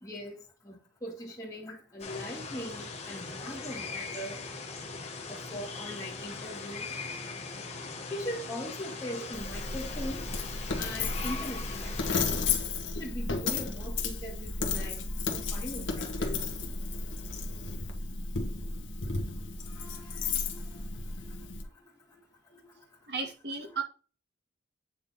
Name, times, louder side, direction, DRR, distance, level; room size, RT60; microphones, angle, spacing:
voice 1, 0.0-4.4 5.3-7.4 8.1-10.3 10.8-12.4 12.9-16.5 19.6-21.6 22.1-22.2 22.5-22.8 23.6-23.8, equal, 20° left, 1.7 m, -41 dB
sound 1, 2.0-12.2, left 4 dB, 35° left, 1.5 m, -40 dB
Coin (dropping), 9.3-21.6, left 4 dB, 80° left, 1.4 m, -33 dB
voice 2, 23.1-23.8, right 4 dB, 60° right, 2.0 m, -34 dB
8.9 x 3.8 x 4.2 m
head